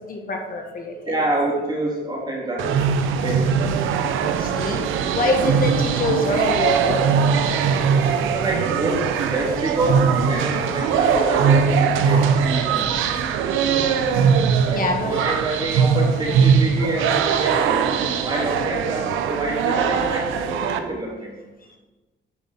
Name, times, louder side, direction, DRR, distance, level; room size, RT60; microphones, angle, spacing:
voice 1, 0.0-1.1 4.4-4.9 5.1-7.1 13.8-14.1 14.7-15.2 18.7-18.8, left 2 dB, 45° left, 2 dB, 1.4 m, -25 dB
voice 2, 1.1-2.9 3.2-3.7 8.3-12.9 14.6-17.8 18.2-21.3, right 2 dB, 20° right, -4 dB, 3.4 m, -27 dB
sound 1, 2.6-20.8, right 6 dB, 90° right, 0.8 m, -21 dB
9.8 x 5.3 x 5.5 m, 1.2 s
cardioid pair, 90°, 20 cm